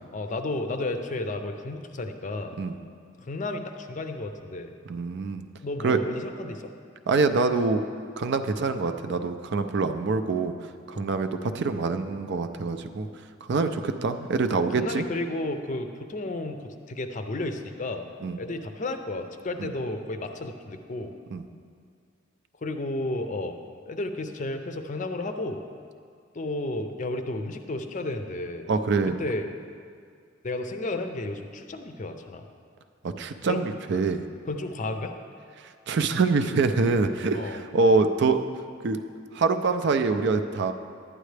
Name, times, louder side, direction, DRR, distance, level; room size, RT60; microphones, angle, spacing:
voice 1, 0.0-2.6 3.2-4.8 5.6-6.7 10.9-11.1 14.5-18.1 18.4-21.1 22.6-23.6 23.9-25.6 26.3-28.7 29.1-29.5 30.4-32.4 33.5-33.6 34.5-35.2 37.3-37.6, left 2 dB, 40° left, 7 dB, 0.5 m, -32 dB
voice 2, 4.9-5.4 5.8-6.0 7.1-7.8 8.2-10.5 10.9-13.1 13.5-15.0 18.2-18.4 19.6-19.7 21.3-21.4 28.7-29.1 33.0-34.2 35.6-38.4 38.8-39.0 39.3-40.7, right 4 dB, 60° right, 8 dB, 0.4 m, -25 dB
11.0 x 9.1 x 3.3 m, 2.2 s
head